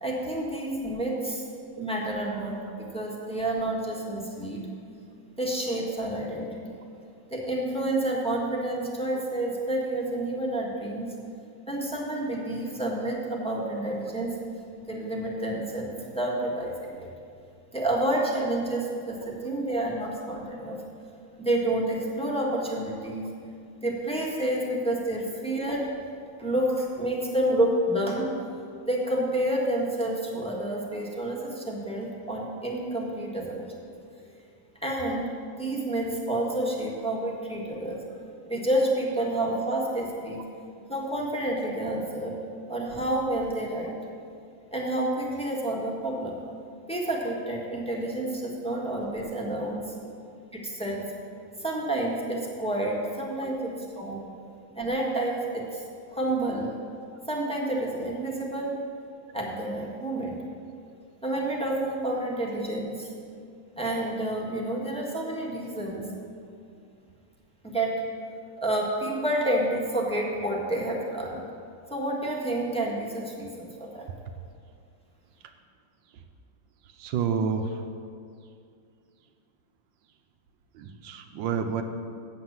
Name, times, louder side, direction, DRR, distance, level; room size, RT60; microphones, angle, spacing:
voice 1, 0.0-1.4 1.8-4.7 5.4-6.7 7.3-11.1 11.7-14.4 14.9-17.1 17.7-20.8 21.4-23.3 23.8-26.0 26.4-33.6 34.8-35.3 35.6-38.0 38.5-40.4 40.9-42.4 42.7-44.0 44.7-46.4 46.9-49.9 50.6-51.0 51.6-54.3 54.7-55.8 56.1-56.7 57.3-58.8 59.3-60.4 61.2-63.1 63.8-66.1 67.6-68.0 68.6-71.4 71.9-74.1, right 1 dB, 5° left, -3 dB, 1.2 m, -29 dB
voice 2, 76.8-77.8 80.7-81.8, right 6 dB, 80° right, 6 dB, 1.4 m, -30 dB
7.9 x 7.8 x 7.2 m, 2.4 s
omnidirectional pair, 2.0 m